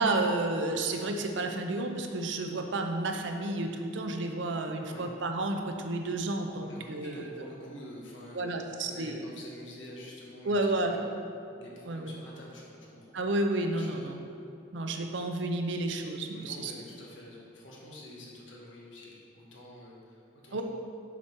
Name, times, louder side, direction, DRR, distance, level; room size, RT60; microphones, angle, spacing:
voice 1, 0.0-7.5 8.3-9.2 10.4-11.0 11.9-12.1 13.1-14.2 14.7-16.7 20.5-20.6, right 2 dB, 70° right, 4 dB, 0.6 m, -31 dB
voice 2, 6.6-11.1 11.6-13.1 13.6-14.1 16.4-20.6, left 1 dB, 75° left, -3 dB, 1.5 m, -48 dB
7.3 x 5.1 x 4.5 m, 2.5 s
head